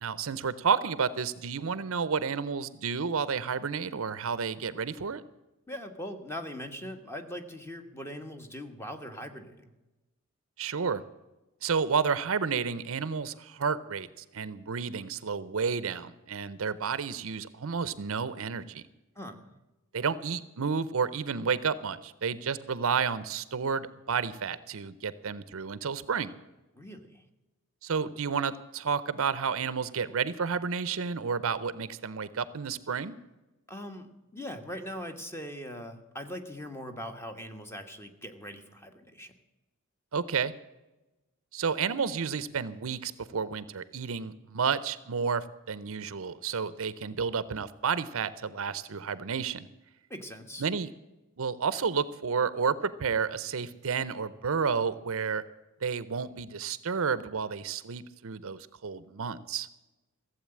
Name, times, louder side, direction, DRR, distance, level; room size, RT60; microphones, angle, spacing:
voice 1, 0.0-5.2 10.6-11.0 11.6-18.8 19.9-26.3 27.8-33.1 40.1-40.5 41.5-49.7 50.6-50.9 51.4-55.4 55.8-59.7, right 6 dB, 65° right, 16 dB, 0.6 m, -31 dB
voice 2, 5.7-9.7 19.1-19.5 26.7-27.2 33.7-39.3 50.1-50.7, equal, 10° left, 7 dB, 1.4 m, -41 dB
15.5 x 8.0 x 8.6 m, 1.1 s
head